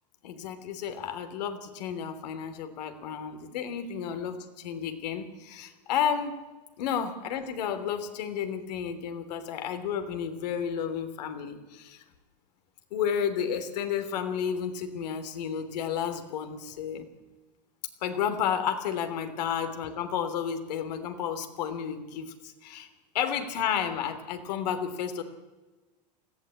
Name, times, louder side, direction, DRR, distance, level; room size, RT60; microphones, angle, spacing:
voice 1, 0.2-6.3 6.8-12.0 12.9-17.1 18.0-22.9 23.1-25.2, left 8 dB, 75° left, 8 dB, 3.3 m, -32 dB
20.0 x 15.5 x 8.5 m, 1.2 s
supercardioid pair, 120°, 21 cm